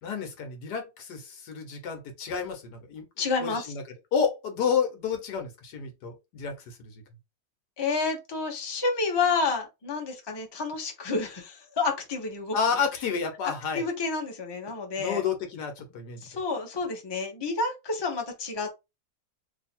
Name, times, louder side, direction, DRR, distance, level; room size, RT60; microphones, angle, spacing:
voice 1, 0.0-3.1 3.4-3.8 4.1-6.9 12.5-13.8 15.0-16.3, left 6 dB, 80° left, 1.5 m, -30 dB
voice 2, 3.2-3.7 7.8-12.5 13.7-15.2 16.2-18.7, left 4 dB, 20° left, 0.7 m, -29 dB
2.9 x 2.8 x 4.2 m
omnidirectional pair, 1.7 m